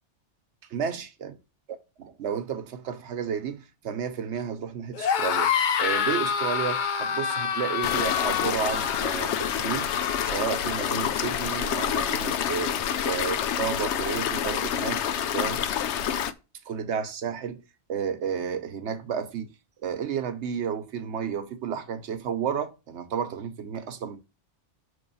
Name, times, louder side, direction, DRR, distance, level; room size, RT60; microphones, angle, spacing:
voice 1, 0.7-1.3 1.7-9.9 10.2-12.8 13.0-15.6 16.7-17.6 17.9-19.5 19.8-24.2, right 7 dB, 75° right, 1.1 m, -32 dB
sound 1, 4.9-10.4, left 7 dB, 55° left, 0.6 m, -27 dB
sound 2, 7.8-16.3, left 9 dB, 75° left, 0.9 m, -28 dB
6.1 x 3.4 x 5.4 m
omnidirectional pair, 1.2 m